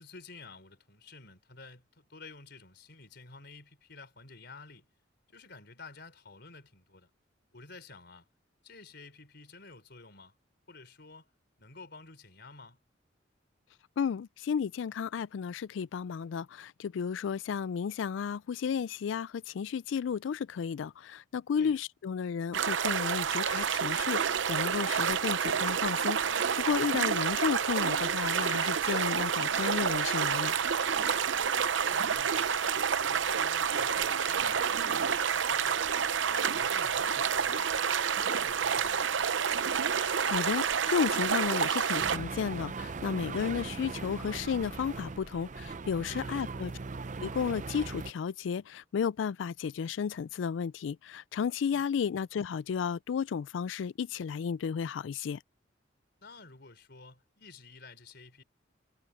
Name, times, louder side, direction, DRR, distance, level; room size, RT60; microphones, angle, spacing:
voice 1, 0.0-4.9 5.3-7.1 7.5-8.3 8.6-10.3 10.7-11.3 11.6-12.8 21.5-21.8 26.8-27.0 31.5-32.7 33.1-35.8 36.3-37.7 38.1-39.1 46.1-46.4 51.7-51.8 56.2-58.4, left 3 dB, 60° left, 4.4 m, -51 dB
voice 2, 14.0-30.6 40.0-46.7 47.2-55.4, left 6 dB, 75° left, 0.3 m, -33 dB
sound 1, 22.5-42.2, right 7 dB, 75° right, 0.7 m, -29 dB
sound 2, 42.0-48.1, right 4 dB, 40° right, 0.6 m, -39 dB
head